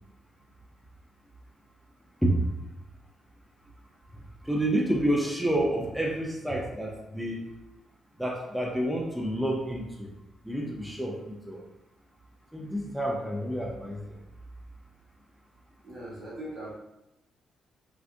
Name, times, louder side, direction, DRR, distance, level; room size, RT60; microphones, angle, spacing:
voice 1, 4.4-7.4 8.2-10.1 10.4-11.6 12.5-14.2, right 1 dB, 5° right, -2 dB, 0.7 m, -29 dB
voice 2, 15.8-16.8, right 1 dB, 65° right, -5 dB, 1.1 m, -40 dB
3.3 x 2.4 x 2.6 m, 0.92 s
hypercardioid pair, 50°, 0 cm